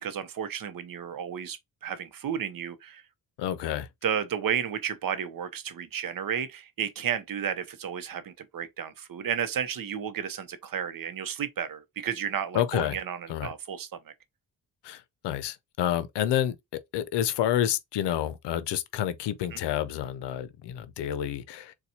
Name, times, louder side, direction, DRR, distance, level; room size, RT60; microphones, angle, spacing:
voice 1, 0.0-3.0 4.0-13.9 19.5-19.6, right 8 dB, 55° right, 0.7 m, -32 dB
voice 2, 3.4-3.9 12.5-13.0 13.3-13.5 14.8-21.7, left 11 dB, 85° left, 0.6 m, -29 dB
4.1 x 2.3 x 2.8 m
cardioid pair, 65°, 40 cm